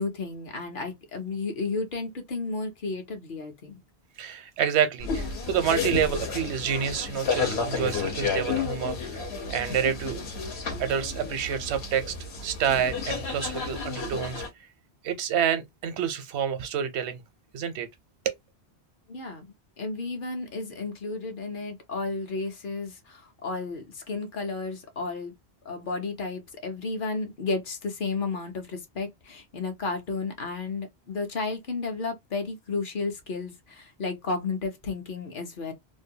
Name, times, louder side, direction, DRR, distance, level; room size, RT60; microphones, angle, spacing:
voice 1, 0.0-3.8 19.1-25.3 25.6-35.7, left 3 dB, 55° left, 0.8 m, -33 dB
voice 2, 4.2-9.2 9.5-10.2 10.8-12.1 12.4-14.4 15.0-17.2 17.5-17.9 18.3-18.4, right 8 dB, 85° right, 0.9 m, -28 dB
sound 1, 5.0-14.5, left 5 dB, 75° left, 1.1 m, -31 dB
2.6 x 2.2 x 2.6 m
omnidirectional pair, 1.1 m